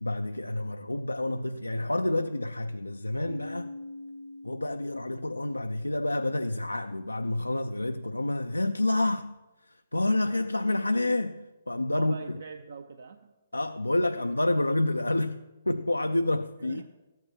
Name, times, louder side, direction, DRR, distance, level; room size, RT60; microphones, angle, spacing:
voice 1, 0.0-3.7 4.4-9.3 9.6-12.4 13.5-16.8, left 2 dB, 85° left, 0.4 m, -29 dB
Keyboard (musical), 3.2-5.9, left 1 dB, 85° right, 2.6 m, -43 dB
voice 2, 11.9-13.3 16.6-17.0, right 4 dB, 60° right, 0.6 m, -43 dB
13.5 x 9.0 x 4.5 m
figure-of-eight pair, 130°, 0 cm